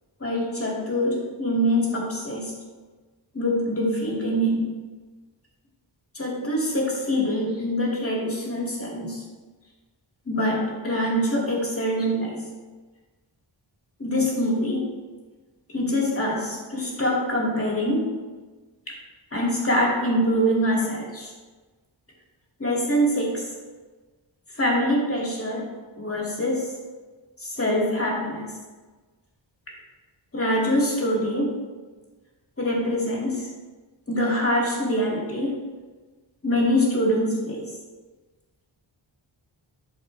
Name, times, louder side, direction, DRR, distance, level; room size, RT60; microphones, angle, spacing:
voice 1, 0.2-2.5 3.3-4.7 6.1-9.2 10.3-12.3 14.0-14.8 15.7-18.1 19.3-21.3 22.6-23.4 24.5-25.6 26.0-26.7 27.4-28.4 30.3-31.5 32.6-33.5 34.1-35.6 36.4-37.6, equal, 30° left, -3 dB, 2.4 m, -24 dB
12.0 x 5.1 x 3.3 m, 1.3 s
wide cardioid pair, 105°, 47 cm